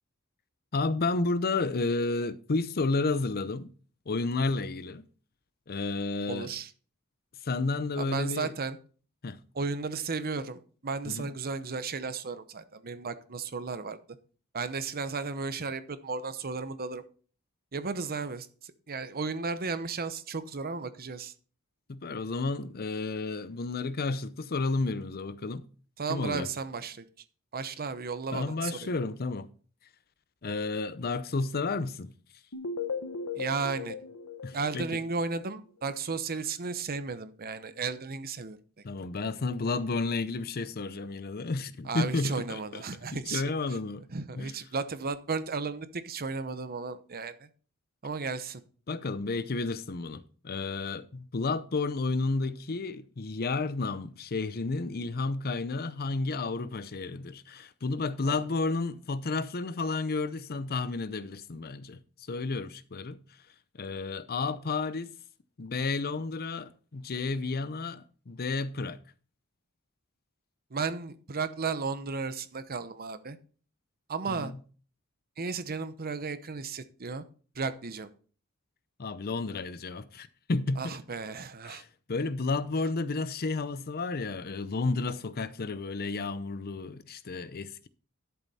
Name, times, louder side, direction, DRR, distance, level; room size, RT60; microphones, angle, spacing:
voice 1, 0.7-3.7 4.1-5.0 5.7-6.5 7.4-8.5 9.2-9.4 11.0-11.3 21.9-25.6 26.1-26.5 28.3-29.5 30.4-32.1 34.4-34.9 38.8-42.8 43.1-44.1 44.4-44.5 48.9-62.0 62.3-63.2 63.8-65.1 65.6-69.0 74.3-74.6 79.0-81.0 81.7-87.9, left 3 dB, 45° left, 0.7 m, -31 dB
voice 2, 6.3-6.7 8.0-8.8 9.5-14.0 14.5-17.0 17.7-18.5 18.9-21.3 26.0-27.1 27.5-28.9 33.3-34.0 34.5-38.6 41.8-43.4 44.1-47.5 48.0-48.6 58.2-58.4 70.7-73.4 74.1-74.5 75.4-77.2 77.6-78.1 80.8-81.8, right 4 dB, 45° right, 0.8 m, -34 dB
sound 1, 32.5-35.5, left 5 dB, 85° left, 1.4 m, -37 dB
11.5 x 7.1 x 4.2 m
head